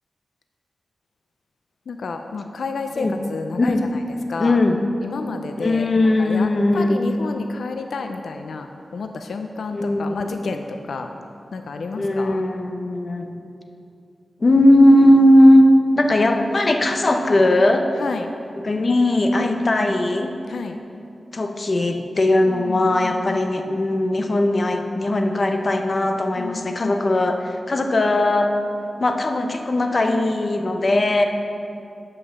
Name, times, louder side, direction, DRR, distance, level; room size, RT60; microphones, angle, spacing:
voice 1, 1.9-3.8 4.3-4.6 5.0-5.9 6.2-6.5 6.7-11.1 11.5-12.4 17.3-17.4 18.0-18.3 19.4-19.9 20.5-20.8 22.5-23.4 26.3-27.0, left 4 dB, 85° left, 5 dB, 0.4 m, -30 dB
voice 2, 4.4-4.8 5.6-7.1 9.7-10.5 12.0-13.3 14.4-17.9 18.5-20.3 21.3-28.5 29.0-31.2, left 1 dB, 40° left, 4 dB, 0.7 m, -18 dB
8.7 x 5.4 x 6.9 m, 2.5 s
wide cardioid pair, 110°, 0 cm